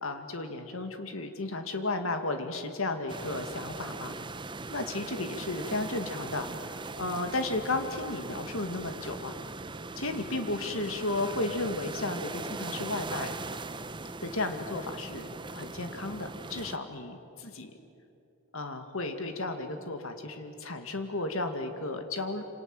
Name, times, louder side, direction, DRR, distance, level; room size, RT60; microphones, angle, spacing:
voice 1, 0.0-4.2 4.7-9.3 10.0-13.3 14.2-17.7 18.5-22.4, left 2 dB, 65° left, 6 dB, 2.1 m, -34 dB
sound 1, 3.1-16.8, right 3 dB, 20° right, 0.7 m, -40 dB
27.5 x 27.5 x 7.8 m, 2.8 s
head